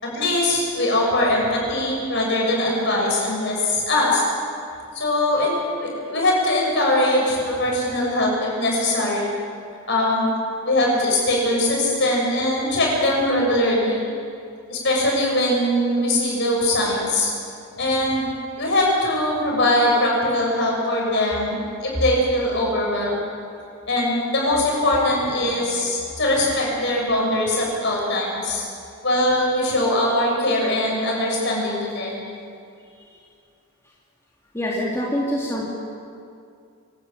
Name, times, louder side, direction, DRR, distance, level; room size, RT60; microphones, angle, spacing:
voice 1, 0.0-4.2 4.9-9.3 9.9-10.3 10.6-14.0 14.7-17.3 17.8-18.2 18.6-23.2 23.9-28.6 29.0-32.3, left 1 dB, 55° left, -2 dB, 6.7 m, -21 dB
voice 2, 34.5-35.6, equal, 10° left, -5 dB, 2.6 m, -25 dB
26.0 x 12.5 x 8.8 m, 2.4 s
head